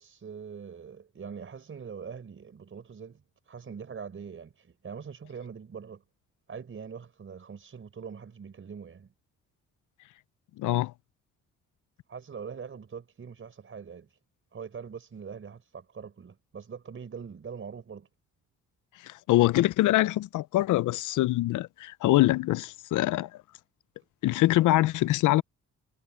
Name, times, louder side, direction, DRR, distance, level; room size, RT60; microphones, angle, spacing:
voice 1, 0.0-6.0 6.5-9.1 12.1-14.2 14.5-18.1, right 6 dB, 45° right, 5.2 m, -43 dB
voice 2, 10.6-10.9 19.0-23.3 24.2-25.4, left 16 dB, 80° left, 0.6 m, -24 dB
cardioid pair, 90°, 30 cm